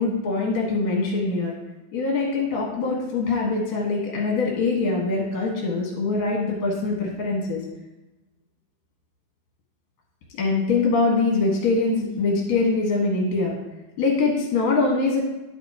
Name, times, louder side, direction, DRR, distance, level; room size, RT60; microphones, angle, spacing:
voice 1, 0.0-1.5 1.9-7.6 10.4-13.6 14.0-15.3, left 3 dB, 65° left, -2 dB, 2.8 m, -23 dB
10.5 x 8.1 x 3.0 m, 1.0 s
omnidirectional pair, 3.7 m